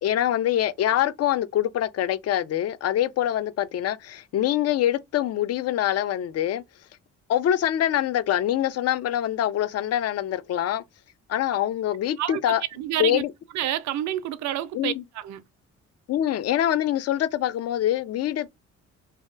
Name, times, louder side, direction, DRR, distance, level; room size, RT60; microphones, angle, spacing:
voice 1, 0.0-6.6 7.3-10.8 11.3-12.6 13.0-13.3 14.7-15.0 16.1-18.5, left 11 dB, 55° left, 0.4 m, -24 dB
voice 2, 12.8-13.2 13.5-15.4, right 12 dB, 70° right, 0.5 m, -28 dB
2.8 x 2.2 x 3.2 m
cardioid pair, 90°, 30 cm